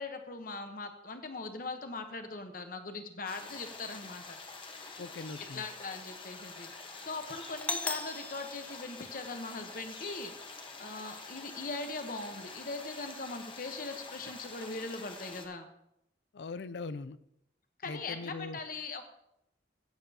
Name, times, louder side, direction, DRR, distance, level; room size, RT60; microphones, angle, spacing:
voice 1, 0.0-4.4 5.5-6.7 7.0-10.3 10.8-15.7 17.8-19.0, left 3 dB, 50° left, 7 dB, 1.0 m, -40 dB
sound 1, 3.3-15.5, left 3 dB, 30° left, 1.2 m, -47 dB
voice 2, 5.0-5.6 16.3-17.2 17.8-18.6, left 3 dB, 75° left, 14 dB, 0.5 m, -40 dB
Doorbell, 7.6-9.6, left 3 dB, 10° left, 0.3 m, -39 dB
15.0 x 9.1 x 2.9 m, 0.81 s
head